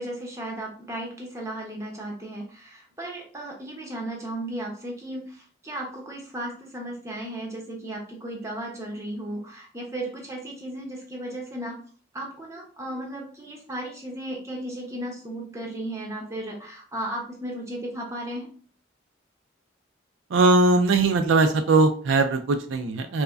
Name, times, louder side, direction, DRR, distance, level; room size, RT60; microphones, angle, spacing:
voice 1, 0.0-11.8 12.1-18.5, right 1 dB, 15° right, -1 dB, 0.7 m, -35 dB
voice 2, 20.3-23.2, right 3 dB, 80° right, 7 dB, 0.4 m, -20 dB
4.6 x 2.1 x 2.5 m, 0.42 s
head